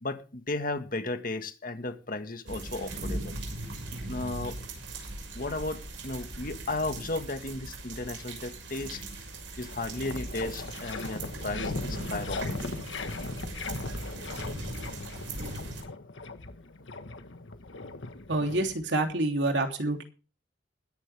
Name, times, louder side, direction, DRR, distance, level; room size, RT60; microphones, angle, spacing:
voice 1, 0.0-3.4 3.9-4.6 5.3-9.1 9.6-12.8, left 2 dB, 50° left, 1.7 m, -35 dB
sound 1, 2.5-15.8, right 2 dB, 90° right, 6.3 m, -39 dB
sound 2, 9.3-9.4 9.7-19.1, left 3 dB, 85° left, 1.5 m, -39 dB
voice 2, 18.3-20.0, right 2 dB, 70° right, 3.1 m, -27 dB
21.0 x 10.5 x 3.5 m
head